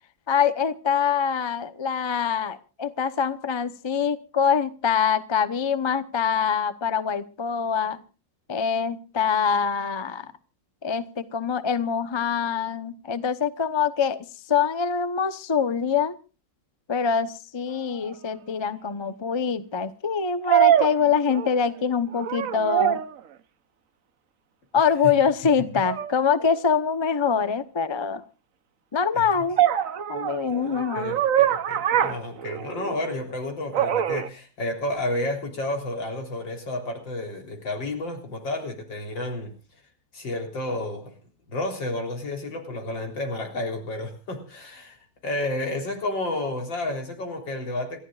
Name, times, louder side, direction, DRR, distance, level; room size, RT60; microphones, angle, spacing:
voice 1, 0.3-8.0 8.5-10.3 10.8-16.1 16.9-23.0 24.7-28.2 28.9-29.6 30.1-31.1, left 6 dB, 30° left, 12 dB, 0.5 m, -24 dB
sound 1, 18.1-18.2 20.5-21.8 22.1-23.2 25.9-26.1 29.6-33.0 33.7-34.3, right 11 dB, 55° right, 1.1 m, -23 dB
voice 2, 30.4-39.5 40.1-41.1 41.5-48.0, left 2 dB, 80° left, 3 dB, 4.4 m, -31 dB
27.5 x 14.5 x 2.4 m, 0.34 s
omnidirectional pair, 2.0 m